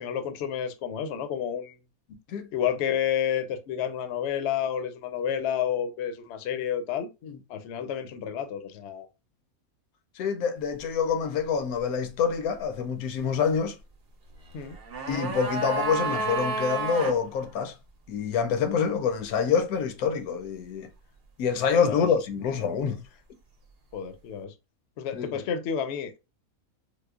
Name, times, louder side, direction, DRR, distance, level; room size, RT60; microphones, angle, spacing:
voice 1, 0.0-1.8 2.5-7.1 7.5-9.1 14.5-14.8 21.8-22.1 23.9-24.5 25.0-26.2, left 8 dB, 65° left, 0.7 m, -30 dB
voice 2, 10.2-13.8 15.1-17.8 18.1-20.9 21.4-23.0 25.1-25.4, left 6 dB, 85° left, 1.1 m, -26 dB
sound 1, 14.6-17.2 17.4-17.5, right 3 dB, 50° right, 0.8 m, -30 dB
4.8 x 2.0 x 2.3 m
omnidirectional pair, 1.5 m